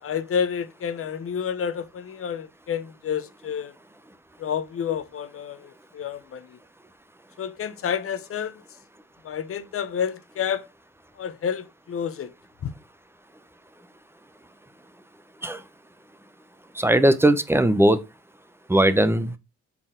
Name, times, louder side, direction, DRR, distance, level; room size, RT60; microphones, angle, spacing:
voice 1, 0.0-3.7 4.4-6.6 7.4-8.6 9.2-10.6 11.2-12.3 12.6-12.7, left 8 dB, 50° left, 0.8 m, -29 dB
voice 2, 16.8-18.0 18.7-19.3, right 1 dB, 10° right, 0.7 m, -19 dB
6.0 x 4.2 x 3.7 m
cardioid pair, 90°, 30 cm